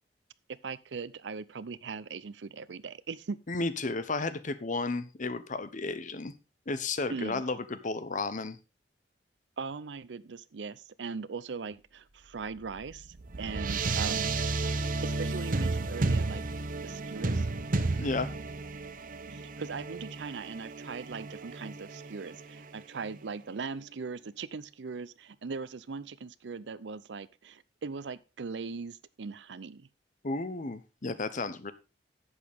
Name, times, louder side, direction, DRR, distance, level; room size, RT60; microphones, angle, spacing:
voice 1, 0.6-3.4 7.1-7.4 9.6-13.1 13.4-14.6 15.0-16.4 16.8-17.5 19.3-29.9, right 4 dB, 85° right, 0.6 m, -40 dB
voice 2, 3.5-6.3 6.7-8.6 18.0-18.3 30.2-31.7, left 3 dB, 45° left, 0.9 m, -33 dB
sound 1, 12.4-23.2, right 3 dB, 50° right, 0.9 m, -33 dB
11.0 x 8.1 x 3.5 m
head